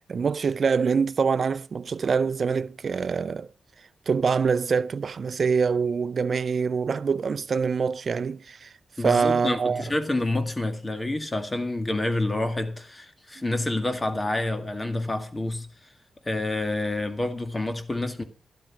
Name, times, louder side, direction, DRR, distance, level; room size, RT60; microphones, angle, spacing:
voice 1, 0.0-3.5 4.1-8.7 9.0-9.8, right 5 dB, 60° right, 0.6 m, -25 dB
voice 2, 9.0-15.7 16.2-18.2, left 2 dB, 25° left, 2.0 m, -28 dB
12.5 x 10.5 x 6.0 m
cardioid pair, 75°, 0 cm